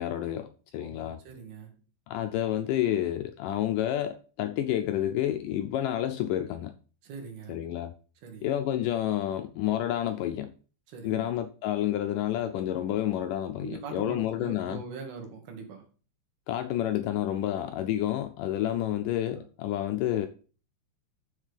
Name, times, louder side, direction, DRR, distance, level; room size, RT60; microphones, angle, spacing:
voice 1, 0.0-1.2 2.1-6.7 7.5-7.9 8.4-10.5 11.0-14.8 16.5-20.3, left 12 dB, 80° left, 1.9 m, -29 dB
voice 2, 0.8-1.8 7.0-7.6 8.2-8.5 10.9-11.3 13.6-15.9 18.7-19.0 19.2-19.4, right 4 dB, 85° right, 3.9 m, -42 dB
7.3 x 6.4 x 5.1 m
omnidirectional pair, 4.3 m